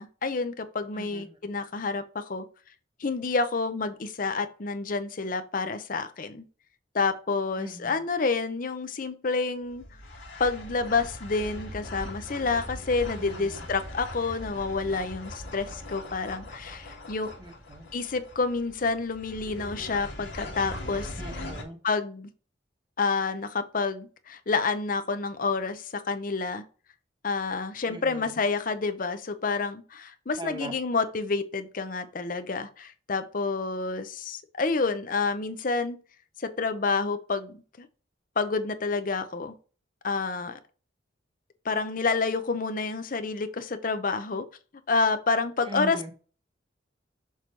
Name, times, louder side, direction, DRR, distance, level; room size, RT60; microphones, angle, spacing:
voice 1, 0.0-2.4 3.0-6.4 6.9-9.8 10.4-17.3 17.9-21.1 21.8-22.3 23.0-26.6 27.2-36.0 36.4-37.9 38.4-39.5 40.0-40.6 41.6-44.4 44.9-46.1, left 4 dB, 45° left, 0.7 m, -29 dB
voice 2, 0.9-1.4 7.6-7.9 13.2-13.7 17.4-17.9 21.2-21.8 27.9-28.4 30.4-30.7 45.7-46.1, right 1 dB, 25° right, 1.1 m, -40 dB
sound 1, 9.7-21.6, left 1 dB, 75° left, 1.8 m, -40 dB
6.5 x 3.1 x 5.2 m
head